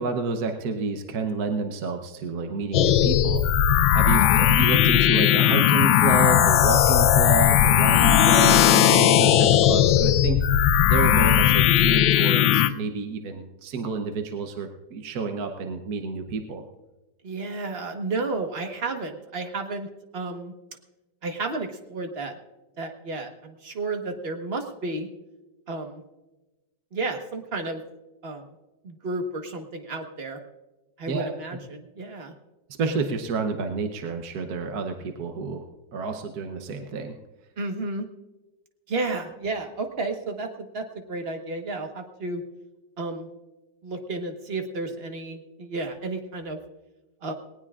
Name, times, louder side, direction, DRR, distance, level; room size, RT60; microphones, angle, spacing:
voice 1, 0.0-3.5 3.9-10.4 10.8-16.6 31.1-31.3 32.8-35.6 35.9-37.1, right 4 dB, 60° right, 5 dB, 1.3 m, -29 dB
sound 1, 2.7-12.7, left 10 dB, 85° left, 1.4 m, -18 dB
voice 2, 4.1-4.5 17.2-19.9 20.1-20.5 21.2-22.3 22.8-25.1 25.7-26.0 26.9-27.8 28.2-28.4 28.8-30.4 31.0-32.3 37.6-38.1 38.9-42.4 43.0-43.3 43.8-46.6 47.2-47.3, right 3 dB, 35° right, 5 dB, 1.3 m, -32 dB
20.0 x 18.5 x 2.4 m, 1.1 s
omnidirectional pair, 2.0 m